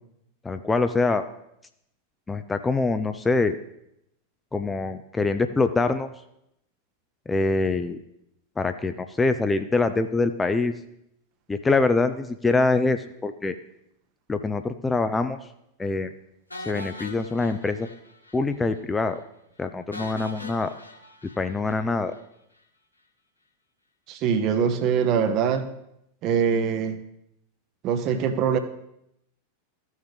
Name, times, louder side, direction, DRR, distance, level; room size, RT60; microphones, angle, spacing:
voice 1, 0.4-1.2 2.3-3.6 4.5-6.1 7.3-8.0 8.6-10.7 11.5-13.6 14.3-15.4 15.8-16.1 16.7-17.9 18.3-19.2 19.6-20.7 21.4-22.1, left 3 dB, 10° left, 9 dB, 0.4 m, -24 dB
sound 1, 16.5-18.4 18.7-18.8 19.1-19.2 19.9-22.2, left 1 dB, 80° left, 1.1 m, -41 dB
voice 2, 24.1-25.7 26.2-27.0 27.8-28.6, right 7 dB, 40° right, 9 dB, 0.8 m, -23 dB
14.0 x 6.4 x 3.5 m, 0.79 s
figure-of-eight pair, 90°, 0 cm